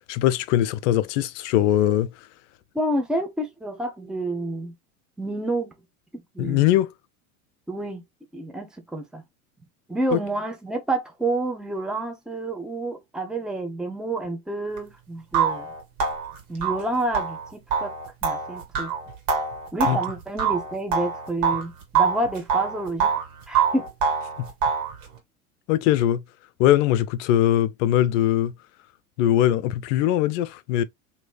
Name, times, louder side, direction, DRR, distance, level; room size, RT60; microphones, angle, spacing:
voice 1, 0.1-2.1 6.4-6.9 10.1-10.2 19.8-20.0 24.4-24.5 25.7-26.2 26.6-28.5 29.2-30.8, left 12 dB, 55° left, 0.5 m, -21 dB
voice 2, 2.7-4.7 5.2-5.7 6.1-6.7 7.7-8.0 8.3-9.2 9.9-15.7 16.5-17.9 18.2-18.9 19.7-23.1 23.5-23.9, right 2 dB, ahead, 0.7 m, -29 dB
sound 1, 14.8-14.9 15.3-21.6 21.9-23.3 23.5-24.9, right 6 dB, 60° right, 1.7 m, -25 dB
3.1 x 2.8 x 2.3 m
hypercardioid pair, 85°, 44 cm